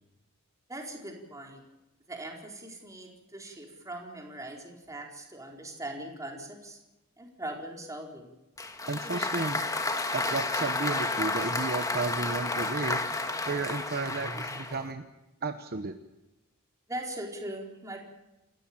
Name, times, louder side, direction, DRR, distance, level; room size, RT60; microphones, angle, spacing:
voice 1, 0.7-1.6 2.1-6.8 7.2-8.3 16.9-18.0, right 1 dB, 15° right, 1 dB, 4.4 m, -40 dB
Applause, 8.6-14.9, left 2 dB, 15° left, 1.7 m, -31 dB
voice 2, 8.9-9.6 10.1-13.0 13.4-15.1 15.4-15.9, right 3 dB, 45° right, 8 dB, 1.0 m, -33 dB
29.0 x 14.0 x 8.7 m, 0.97 s
head